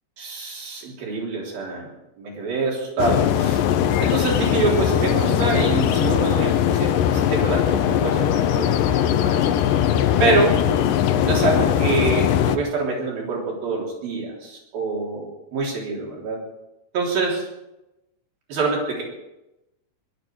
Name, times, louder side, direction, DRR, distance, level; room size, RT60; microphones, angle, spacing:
voice 1, 0.2-1.9 2.2-3.6 4.0-9.5 10.2-10.6 11.2-16.4 16.9-17.5 18.5-19.0, right 3 dB, 85° right, -2 dB, 5.4 m, -25 dB
sound 1, 3.0-12.6, left 10 dB, 75° left, 2.4 m, -20 dB
21.5 x 12.5 x 4.7 m, 0.92 s
omnidirectional pair, 4.0 m